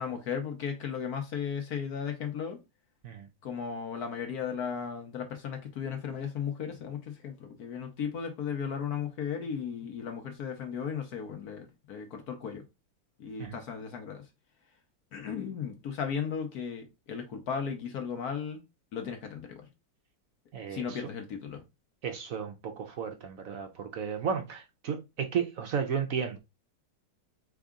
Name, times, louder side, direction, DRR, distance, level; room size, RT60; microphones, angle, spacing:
voice 1, 0.0-2.6 3.4-12.6 13.2-14.3 15.1-18.6 18.9-19.7 20.7-21.6, left 7 dB, 60° left, 1.2 m, -35 dB
voice 2, 20.5-21.0 22.0-26.4, right 7 dB, 60° right, 0.9 m, -33 dB
4.0 x 3.6 x 3.6 m
omnidirectional pair, 2.1 m